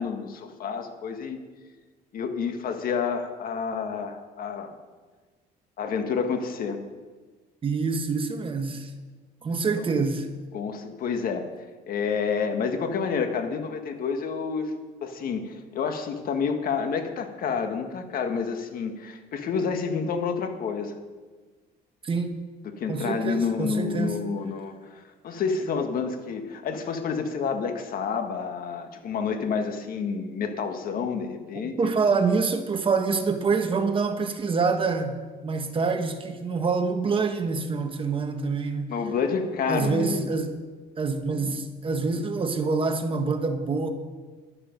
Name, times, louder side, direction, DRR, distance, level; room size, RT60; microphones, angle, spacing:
voice 1, 0.0-1.4 2.1-4.8 5.8-6.8 9.7-9.9 10.5-11.5 11.9-21.0 22.6-31.8 38.9-40.3 41.3-41.6, left 5 dB, 60° left, 1.7 m, -29 dB
voice 2, 7.6-8.9 9.4-10.3 22.0-22.3 22.9-24.2 31.5-35.2 35.4-38.9 39.7-40.5 41.0-43.9, right 4 dB, 30° right, 1.3 m, -26 dB
12.0 x 12.0 x 5.3 m
cardioid pair, 110°, 17 cm